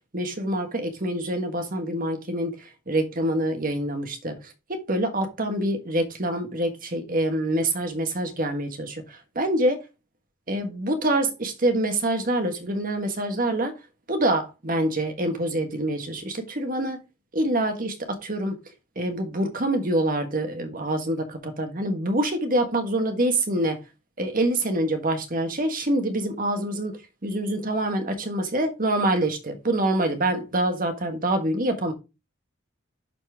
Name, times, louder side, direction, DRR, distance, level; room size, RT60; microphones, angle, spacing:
voice 1, 0.1-9.8 10.5-13.8 14.1-17.0 17.3-23.8 24.2-31.9, right 1 dB, 40° right, 1.5 m, -26 dB
11.5 x 4.3 x 3.6 m
head